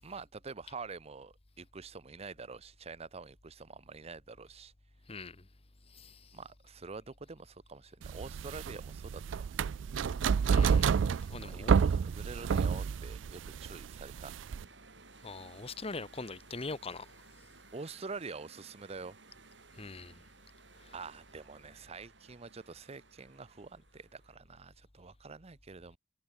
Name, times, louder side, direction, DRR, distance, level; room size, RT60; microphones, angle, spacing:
voice 1, 0.0-4.7 6.3-9.5 11.4-14.3 17.7-19.2 20.9-26.0, right 4 dB, 35° right, 0.7 m, -46 dB
voice 2, 5.1-5.5 5.9-6.3 10.5-11.7 15.2-17.1 19.7-20.2 20.8-20.9, left 3 dB, 30° left, 1.2 m, -43 dB
sound 1, 8.0-14.6, right 6 dB, 85° right, 0.4 m, -29 dB
sound 2, 13.1-24.4, right 4 dB, 70° right, 4.2 m, -59 dB
head